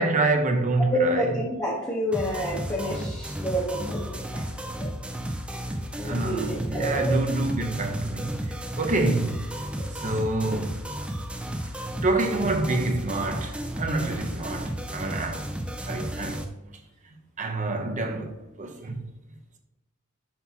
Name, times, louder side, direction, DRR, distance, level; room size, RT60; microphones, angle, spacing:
voice 1, 0.0-1.3 6.0-9.6 9.9-10.8 12.0-15.5 15.8-16.5 17.4-19.0, right 2 dB, 35° right, 0.7 m, -27 dB
voice 2, 0.8-4.9 6.0-7.2 9.7-10.1, equal, 15° left, 0.9 m, -29 dB
sound 1, 2.1-16.4, equal, 5° right, 0.5 m, -33 dB
5.8 x 5.7 x 2.8 m
head